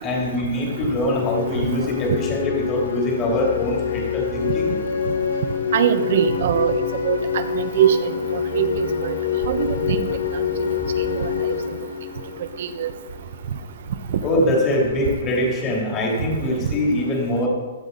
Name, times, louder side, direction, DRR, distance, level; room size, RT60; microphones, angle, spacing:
voice 1, 0.0-4.7 14.2-17.5, left 1 dB, 20° left, -2 dB, 3.1 m, -23 dB
sound 1, 0.6-13.3, left 7 dB, 75° left, 1.7 m, -26 dB
voice 2, 5.7-6.7 7.0-8.0 8.3-9.1 9.5-10.1 11.1-11.3 12.6-12.9, right 10 dB, 50° right, 11 dB, 1.0 m, -21 dB
16.5 x 13.0 x 4.0 m, 1.3 s
hypercardioid pair, 175°, 0 cm